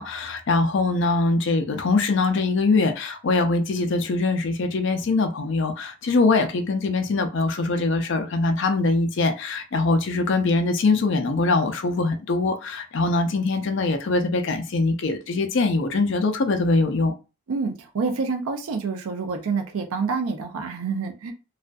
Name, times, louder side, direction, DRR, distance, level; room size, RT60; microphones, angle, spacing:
voice 1, 0.0-17.1, left 3 dB, 55° left, 0.4 m, -22 dB
voice 2, 17.5-21.3, right 4 dB, 75° right, 0.4 m, -27 dB
2.5 x 2.4 x 2.2 m
head